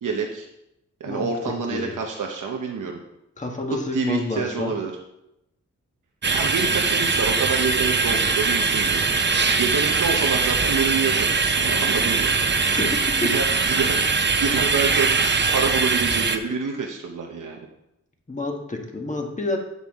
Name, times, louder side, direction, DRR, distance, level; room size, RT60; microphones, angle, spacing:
voice 1, 0.0-0.5 1.0-3.0 3.9-4.9 6.3-9.1 9.4-12.3 12.8-12.9 13.2-15.1 15.5-17.7, right 5 dB, 85° right, 1 dB, 1.0 m, -27 dB
voice 2, 1.1-2.0 3.4-4.7 12.6-13.3 18.3-19.6, left 2 dB, 25° left, 2 dB, 1.5 m, -29 dB
sound 1, 6.2-16.4, right 4 dB, 35° right, 0.6 m, -21 dB
8.9 x 8.3 x 3.6 m, 0.85 s
wide cardioid pair, 120°, 30 cm